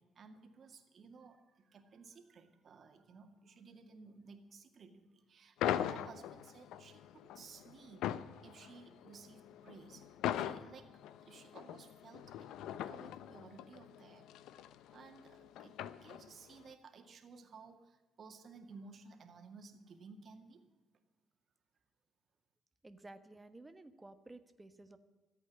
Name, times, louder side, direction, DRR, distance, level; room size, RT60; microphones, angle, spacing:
voice 1, 0.0-8.1 8.4-14.3 14.9-20.6, right 4 dB, 50° right, 6 dB, 2.2 m, -56 dB
sound 1, 5.6-16.5, left 11 dB, 90° left, 0.6 m, -41 dB
voice 2, 22.8-25.0, right 2 dB, 15° right, 9 dB, 1.3 m, -54 dB
14.5 x 8.5 x 9.9 m, 1.2 s
cardioid pair, 90°, 0 cm